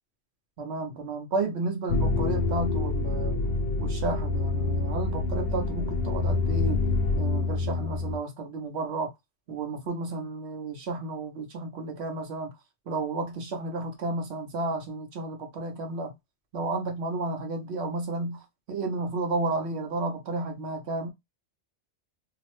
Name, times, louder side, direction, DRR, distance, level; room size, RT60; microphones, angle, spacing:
voice 1, 0.6-3.4 3.8-6.8 7.2-9.1 9.5-12.5 12.9-16.1 16.5-21.1, right 3 dB, 70° right, 1.1 m, -32 dB
sound 1, 1.9-8.2, left 3 dB, 65° left, 0.7 m, -27 dB
2.9 x 2.0 x 3.0 m
omnidirectional pair, 1.2 m